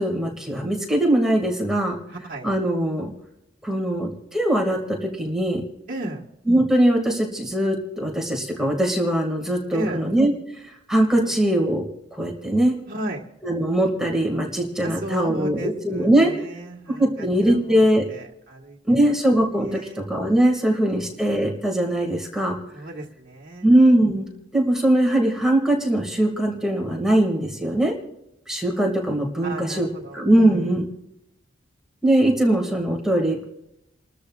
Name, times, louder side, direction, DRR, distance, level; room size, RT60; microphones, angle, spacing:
voice 1, 0.0-2.0 2.4-3.1 3.6-5.6 6.5-10.3 10.6-11.8 12.1-12.8 13.4-16.3 17.0-18.0 18.9-22.6 23.6-28.0 28.5-29.9 30.1-30.8 32.0-33.4, right 1 dB, 5° right, -1 dB, 2.1 m, -21 dB
voice 2, 2.1-2.5 5.9-6.2 9.7-10.0 11.2-11.3 12.9-13.2 14.8-17.8 18.1-19.2 19.6-20.0 20.6-21.0 22.7-23.7 29.4-30.8, right 1 dB, 50° right, -2 dB, 1.5 m, -34 dB
29.5 x 13.5 x 2.4 m, 0.82 s
head